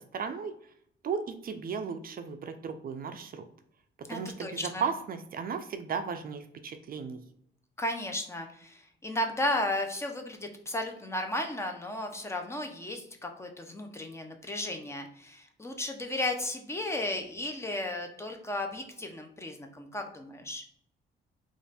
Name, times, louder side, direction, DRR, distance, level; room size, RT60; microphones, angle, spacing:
voice 1, 0.1-0.5 1.0-3.4 4.0-7.2, right 6 dB, 45° right, 8 dB, 0.4 m, -35 dB
voice 2, 4.1-4.8 7.8-20.6, left 1 dB, 15° left, 4 dB, 0.7 m, -34 dB
3.2 x 2.5 x 4.1 m, 0.69 s
cardioid pair, 90°, 20 cm